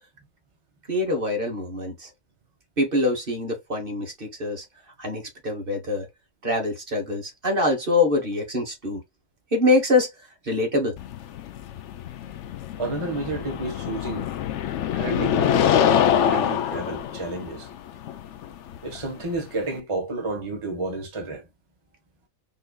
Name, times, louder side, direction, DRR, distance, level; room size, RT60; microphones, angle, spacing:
voice 1, 0.9-2.1 2.8-4.6 5.0-6.1 6.4-9.0 9.5-10.1 10.4-10.9, left 2 dB, 40° right, 1.4 m, -24 dB
sound 1, 11.0-19.8, left 9 dB, 65° left, 0.8 m, -25 dB
voice 2, 12.8-14.3 14.9-17.7 18.8-21.4, right 3 dB, 25° right, 1.1 m, -31 dB
5.4 x 2.7 x 2.3 m
omnidirectional pair, 1.4 m